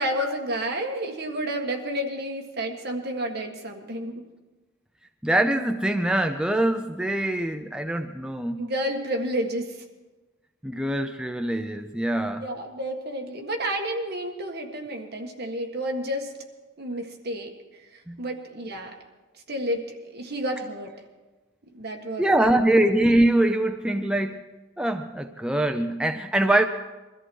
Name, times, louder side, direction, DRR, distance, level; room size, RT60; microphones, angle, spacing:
voice 1, 0.0-4.3 8.6-9.8 12.4-16.3 16.8-19.0 19.5-20.9 21.7-22.7, equal, 55° right, 3 dB, 1.7 m, -31 dB
voice 2, 5.2-8.7 10.6-12.4 18.1-18.2 22.2-24.5 24.8-26.7, right 1 dB, 5° right, 6 dB, 0.5 m, -23 dB
22.0 x 13.5 x 4.6 m, 1.2 s
head